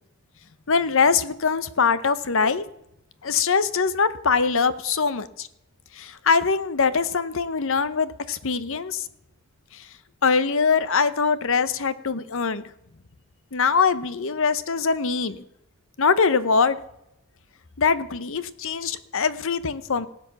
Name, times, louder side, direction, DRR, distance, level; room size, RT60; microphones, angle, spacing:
voice 1, 0.7-2.6 3.2-5.5 5.9-9.1 9.7-9.9 10.2-12.6 13.5-15.4 16.0-16.8 17.8-20.1, left 5 dB, 60° left, 15 dB, 0.8 m, -23 dB
18.5 x 8.0 x 6.8 m, 0.82 s
head